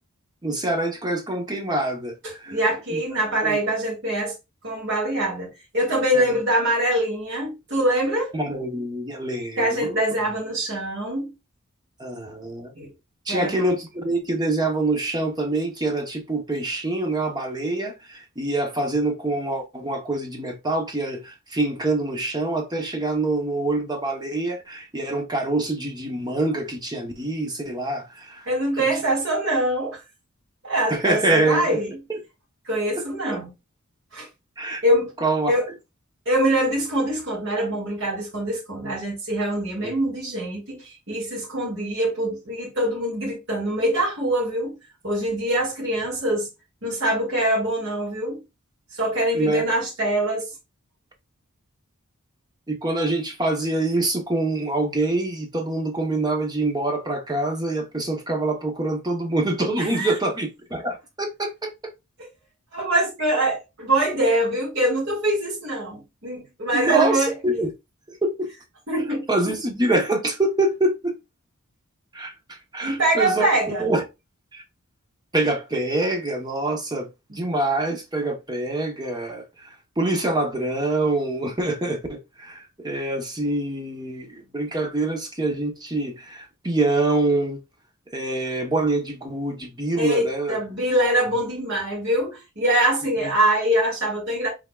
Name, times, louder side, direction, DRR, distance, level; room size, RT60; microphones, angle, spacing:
voice 1, 0.4-2.6 2.9-3.0 3.4-3.6 6.1-6.3 8.3-10.0 12.0-12.7 13.3-28.5 30.9-31.8 32.9-33.0 34.6-34.8 35.2-35.5 39.8-39.9 49.3-49.6 52.7-61.9 66.7-67.7 68.1-68.5 69.3-71.2 72.1-73.5 73.8-74.0 74.5-74.6 75.3-87.6 88.1-90.6 93.2-93.3, right 2 dB, 20° right, 0.9 m, -25 dB
voice 2, 2.2-4.3 4.6-8.3 9.6-11.3 12.8-12.9 13.3-13.7 28.5-30.0 30.6-31.9 32.6-33.5 34.1-34.3 34.8-35.1 35.5-35.7 36.3-44.8 45.0-46.5 46.8-48.4 49.0-50.5 59.8-60.1 62.7-67.3 68.9-69.3 72.8-73.9 77.3-77.4 90.0-94.5, right 1 dB, 55° right, 2.0 m, -24 dB
5.7 x 3.6 x 2.3 m
head